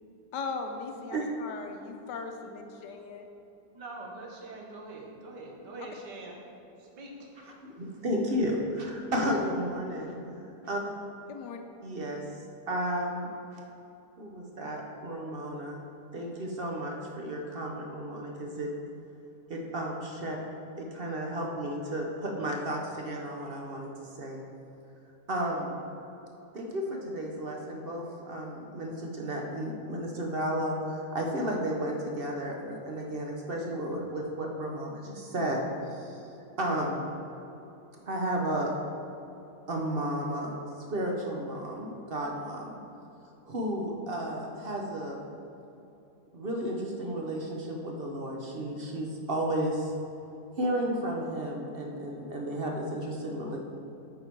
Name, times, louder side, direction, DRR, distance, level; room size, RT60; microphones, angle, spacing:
voice 1, 0.3-3.3 11.3-11.6, left 4 dB, 80° left, 5 dB, 1.3 m, -38 dB
voice 2, 3.7-6.4 6.8-7.3, right 2 dB, 80° right, -1 dB, 1.8 m, -44 dB
voice 3, 7.8-10.1 10.6-10.8 11.8-12.2 12.7-13.6 14.2-15.8 16.1-18.7 19.5-20.4 20.8-24.4 25.3-25.8 26.5-35.6 35.9-36.2 36.6-37.1 38.1-38.7 39.7-40.5 40.9-42.8 43.5-45.2 46.3-49.9 50.6-53.6, right 1 dB, 45° right, 0 dB, 0.8 m, -33 dB
8.8 x 5.6 x 4.6 m, 2.9 s
omnidirectional pair, 1.8 m